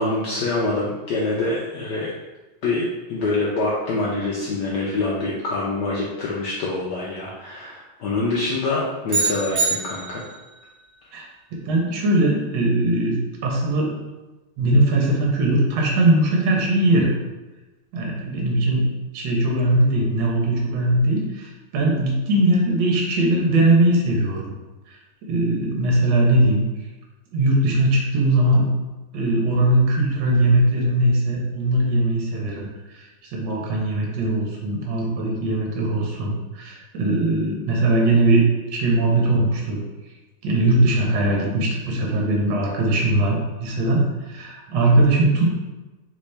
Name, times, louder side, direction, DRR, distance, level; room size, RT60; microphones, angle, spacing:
voice 1, 0.0-2.1 2.6-10.2, left 2 dB, 75° left, -5 dB, 1.0 m, -25 dB
sound 1, 9.1-10.5, right 3 dB, 45° right, 0.9 m, -24 dB
voice 2, 11.7-13.9 14.6-17.1 17.9-18.9 19.1-24.5 24.9-25.0 25.3-26.6 27.3-28.7 29.1-38.4 38.7-39.8 40.4-45.6, right 1 dB, 65° right, -1 dB, 1.6 m, -20 dB
4.1 x 3.7 x 3.3 m, 1.1 s
omnidirectional pair, 2.4 m